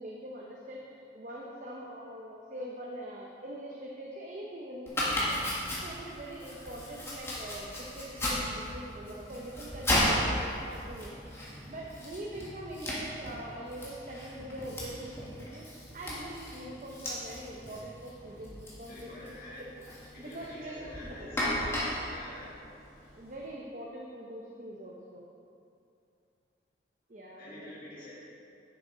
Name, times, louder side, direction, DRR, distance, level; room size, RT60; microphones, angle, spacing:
voice 1, 0.0-5.4 5.8-11.2 11.7-15.7 15.9-19.8 20.2-21.3 23.2-25.2 27.1-27.7, right 1 dB, 45° right, -3 dB, 0.8 m, -43 dB
Domestic sounds home sounds, 4.9-23.3, left 1 dB, 15° left, 1.6 m, -35 dB
voice 2, 18.9-19.6 20.1-21.5 22.1-22.5 27.4-28.1, left 1 dB, 50° left, -9 dB, 2.1 m, -47 dB
9.9 x 7.3 x 3.9 m, 2.6 s
head